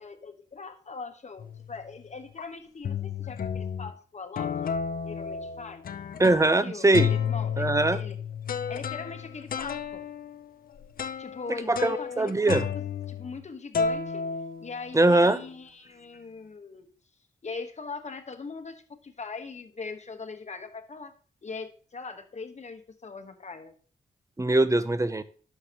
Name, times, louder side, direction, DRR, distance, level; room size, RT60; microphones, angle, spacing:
voice 1, 0.0-4.7 5.0-5.9 6.3-8.2 8.7-10.1 11.2-14.3 14.6-16.9 17.4-21.1 21.4-23.7, left 4 dB, 50° left, 7 dB, 1.3 m, -41 dB
sound 1, 1.4-1.8 2.4-2.5 2.8-3.9 4.4-6.6 6.9-13.5 13.7-15.1, left 6 dB, 70° left, 0.6 m, -32 dB
voice 2, 6.2-7.1 7.6-8.0 11.7-12.6 14.9-15.4 24.4-25.2, right 2 dB, 20° right, 13 dB, 0.8 m, -22 dB
11.0 x 6.7 x 3.0 m, 0.43 s
cardioid pair, 60°, 15 cm